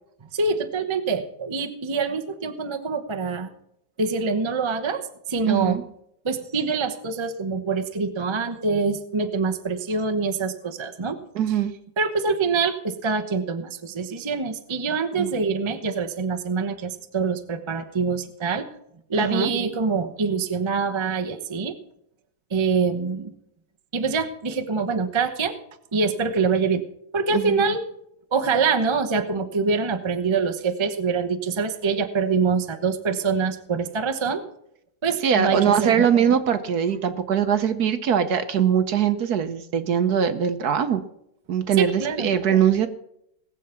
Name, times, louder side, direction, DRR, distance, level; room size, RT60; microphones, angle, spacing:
voice 1, 0.3-3.5 4.0-5.8 6.2-11.2 12.0-18.7 19.1-21.8 22.5-23.3 23.9-25.5 25.9-26.8 27.1-27.8 28.3-34.4 35.0-36.1 41.8-42.3, right 4 dB, 25° right, 7 dB, 0.6 m, -25 dB
voice 2, 5.4-5.8 11.3-11.7 15.2-15.3 19.2-19.5 27.3-27.6 35.2-41.0 41.5-42.9, right 8 dB, 60° right, 10 dB, 1.2 m, -22 dB
18.5 x 7.5 x 5.8 m, 0.76 s
omnidirectional pair, 2.1 m